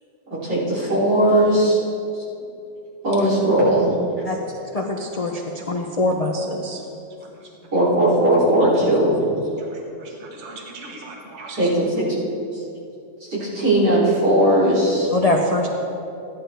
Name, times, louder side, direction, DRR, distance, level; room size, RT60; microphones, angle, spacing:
voice 1, 0.3-1.8 3.0-3.9 7.7-9.2 11.6-12.1 13.3-15.1, right 1 dB, 75° right, -8 dB, 3.9 m, -18 dB
voice 2, 4.7-6.8 15.1-15.7, left 2 dB, 60° left, 1 dB, 0.3 m, -23 dB
voice 3, 9.6-11.7, right 3 dB, 45° right, 0 dB, 1.5 m, -39 dB
15.0 x 10.5 x 3.4 m, 2.7 s
omnidirectional pair, 1.8 m